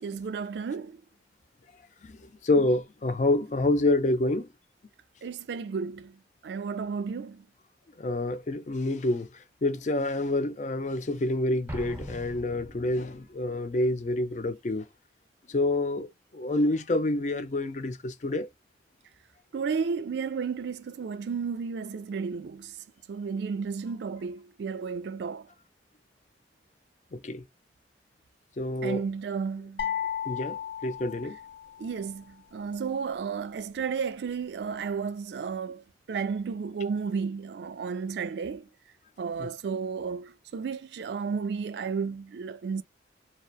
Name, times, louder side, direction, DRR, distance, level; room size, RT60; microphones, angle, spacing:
voice 1, 0.0-1.0 5.2-6.2 6.4-7.4 19.5-22.7 23.1-25.5 28.8-29.9 31.8-38.7 39.2-42.8, right 5 dB, 65° right, 0.3 m, -33 dB
voice 2, 2.4-4.5 8.0-9.3 9.6-14.9 15.5-16.1 16.3-18.5 27.1-27.4 28.6-29.0 30.3-30.5 30.8-31.4 39.4-39.5, left 2 dB, 40° left, 0.5 m, -27 dB
Explosion, 11.7-13.3, equal, 10° right, 0.6 m, -41 dB
sound 1, 29.8-31.9, left 9 dB, 75° left, 0.7 m, -34 dB
2.7 x 2.0 x 2.3 m
head